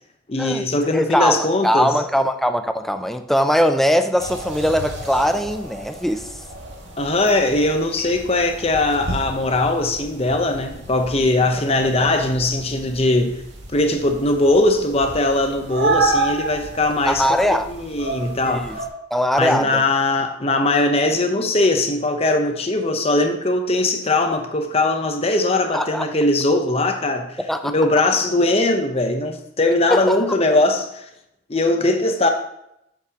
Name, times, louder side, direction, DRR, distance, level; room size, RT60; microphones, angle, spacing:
voice 1, 0.3-1.9 7.0-13.4 13.7-17.3 17.7-18.7 19.4-31.1 31.5-32.3, left 2 dB, 30° left, 0.8 m, -20 dB
voice 2, 0.9-6.3 11.8-11.9 17.1-17.7 18.4-18.8 19.1-19.8 25.7-26.1 27.5-27.7 29.9-30.2, equal, ahead, 0.4 m, -20 dB
sound 1, 4.2-18.9, right 3 dB, 65° right, 1.9 m, -30 dB
8.5 x 7.5 x 2.9 m
head